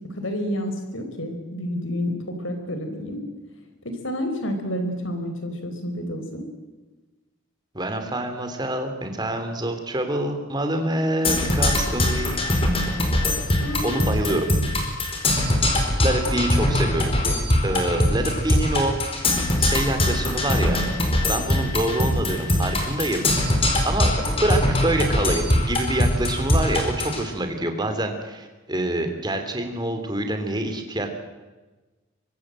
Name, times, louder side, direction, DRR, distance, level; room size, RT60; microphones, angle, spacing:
voice 1, 0.1-3.2 3.8-6.4 13.6-14.0, equal, 75° left, 7 dB, 4.9 m, -29 dB
voice 2, 7.7-12.4 13.8-14.5 16.0-17.2 17.6-18.9 19.6-20.8 21.3-23.3 23.8-31.1, right 1 dB, 20° right, 6 dB, 3.2 m, -26 dB
Percussion, 11.2-27.2, left 1 dB, 30° left, 4.6 m, -22 dB
24.0 x 24.0 x 7.7 m, 1.2 s
head